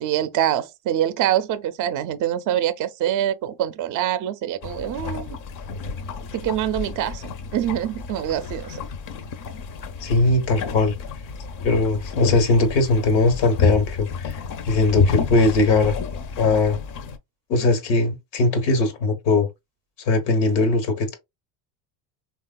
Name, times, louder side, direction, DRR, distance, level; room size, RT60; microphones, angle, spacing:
voice 1, 0.0-5.4 6.3-7.2 7.5-8.8, right 11 dB, 40° right, 0.4 m, -25 dB
sound 1, 4.6-17.2, left 4 dB, 45° left, 0.5 m, -30 dB
voice 2, 10.0-10.9 11.6-15.9 16.4-16.8 17.5-19.5 20.0-21.1, left 3 dB, 85° left, 1.1 m, -20 dB
3.4 x 2.4 x 2.2 m
supercardioid pair, 95°, 48 cm